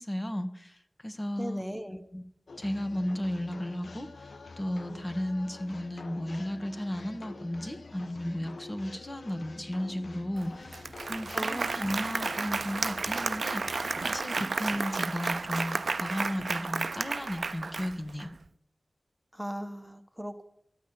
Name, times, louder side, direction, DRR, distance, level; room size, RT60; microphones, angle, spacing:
voice 1, 0.0-1.7 2.1-2.2 2.6-18.3, left 1 dB, 35° left, 7 dB, 1.3 m, -34 dB
voice 2, 1.4-2.0 11.3-11.7 19.3-20.4, equal, 5° right, 7 dB, 1.1 m, -38 dB
sound 1, 2.5-14.3, left 3 dB, 90° left, 0.5 m, -47 dB
Applause, 10.4-10.5 10.7-18.3, right 4 dB, 85° right, 0.4 m, -32 dB
12.5 x 6.2 x 8.7 m, 0.75 s
cardioid pair, 40°, 0 cm